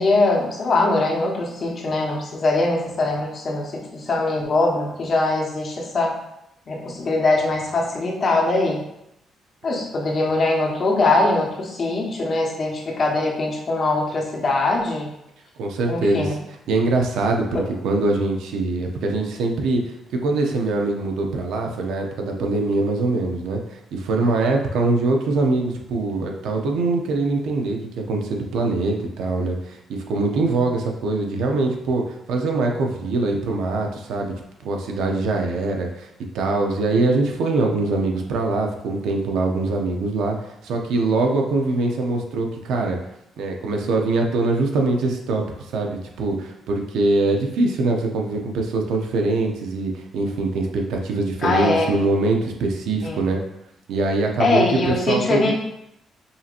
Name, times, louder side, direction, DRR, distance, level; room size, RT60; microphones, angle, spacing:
voice 1, 0.0-6.1 6.7-8.8 9.6-15.1 15.9-16.4 17.5-17.6 51.4-51.9 53.0-53.2 54.4-55.5, left 2 dB, 45° left, -1 dB, 1.1 m, -22 dB
voice 2, 15.6-16.4 16.7-19.8 20.2-34.3 34.6-36.1 36.3-40.4 40.6-43.0 43.4-53.4 53.9-55.5, right 3 dB, 85° right, 2 dB, 0.6 m, -23 dB
5.5 x 2.9 x 2.5 m, 0.83 s
cardioid pair, 90°, 0 cm